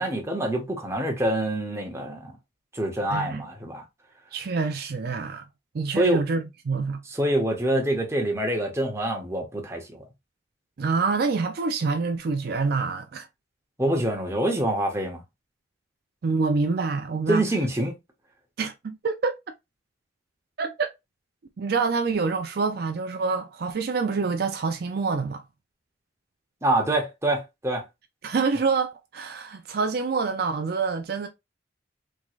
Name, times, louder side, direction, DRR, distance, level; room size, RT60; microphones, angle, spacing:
voice 1, 0.0-2.3 2.7-3.8 5.9-6.2 7.1-10.0 13.8-15.2 17.3-17.9 26.6-27.8, right 1 dB, 15° right, 0.9 m, -26 dB
voice 2, 3.1-3.4 4.3-5.4 5.7-7.0 10.8-13.3 16.2-17.4 18.6-19.4 20.6-20.9 21.6-25.4 28.2-31.3, right 4 dB, 55° right, 0.4 m, -26 dB
3.6 x 3.1 x 2.4 m
head